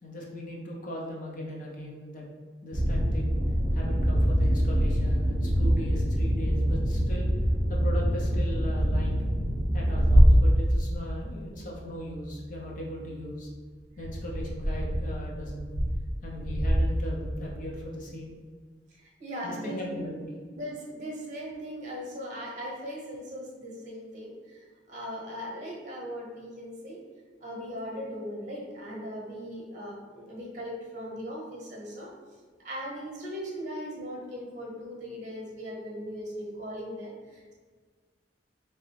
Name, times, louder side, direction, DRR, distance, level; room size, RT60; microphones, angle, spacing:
voice 1, 0.0-2.2 2.6-3.4 3.7-7.3 7.7-9.2 9.7-13.5 14.0-15.7 16.2-18.4 19.4-20.3, equal, 45° left, -3 dB, 0.7 m, -38 dB
sound 1, 2.7-11.6 12.0-12.4 12.7-12.8 14.0-17.7, equal, 85° left, 1.0 m, -24 dB
voice 2, 18.9-20.2 20.5-27.0 27.4-32.1 32.6-37.5, equal, 45° right, -3 dB, 0.9 m, -39 dB
3.6 x 2.9 x 3.3 m, 1.5 s
head